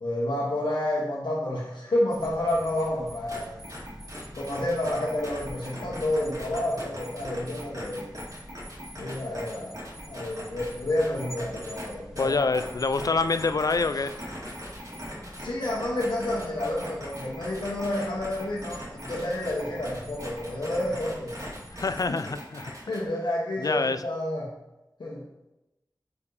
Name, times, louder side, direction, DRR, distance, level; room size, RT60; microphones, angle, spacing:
voice 1, 0.0-3.8 4.3-8.1 9.0-9.8 10.1-12.5 15.4-21.4 21.9-22.2 22.8-24.5 25.0-25.2, left 1 dB, 80° left, 1.1 m, -29 dB
sound 1, 2.1-22.1, equal, 5° right, 1.4 m, -46 dB
sound 2, 3.3-3.4 3.6-10.7 11.0-11.8 12.2-23.1, equal, 50° right, 2.3 m, -40 dB
voice 2, 12.2-14.2 21.7-22.7 23.6-24.0, left 4 dB, 50° left, 0.4 m, -26 dB
5.3 x 4.7 x 4.8 m
wide cardioid pair, 65°, 8 cm